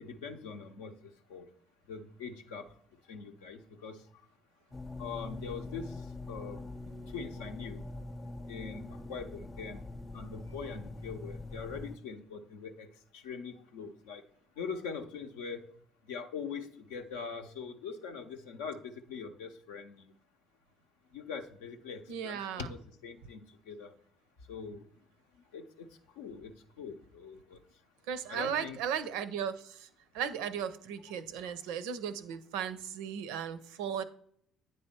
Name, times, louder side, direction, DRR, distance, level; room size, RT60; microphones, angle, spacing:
voice 1, 0.0-1.5 1.9-2.7 3.1-4.0 5.0-6.6 7.1-7.9 8.5-9.9 10.1-12.9 13.1-14.2 14.6-15.7 16.1-20.1 21.1-23.9 24.5-24.8 25.5-25.9 26.2-27.6 28.3-28.8 31.1-31.5, left 5 dB, 75° left, 6 dB, 0.6 m, -42 dB
sound 1, 4.7-12.0, left 2 dB, 30° left, 0.7 m, -43 dB
voice 2, 22.1-22.7 28.1-29.9 30.1-34.0, right 8 dB, 70° right, 13 dB, 0.5 m, -36 dB
9.4 x 3.4 x 4.3 m, 0.65 s
hypercardioid pair, 50°, 0 cm